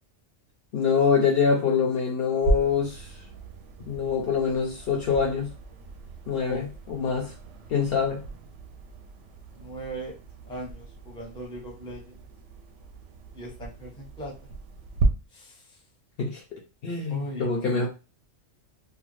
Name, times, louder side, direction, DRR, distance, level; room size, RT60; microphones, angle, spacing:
voice 1, 0.7-3.1 3.9-5.5 6.3-7.3 7.7-8.2 16.2-17.9, left 6 dB, 60° left, 0.7 m, -25 dB
sound 1, 2.4-15.1, right 3 dB, 70° right, 0.8 m, -35 dB
voice 2, 9.6-10.1 10.4-12.2 13.3-14.3 15.3-15.8 17.1-17.7, right 1 dB, 5° left, 0.5 m, -39 dB
2.5 x 2.2 x 3.0 m
omnidirectional pair, 1.3 m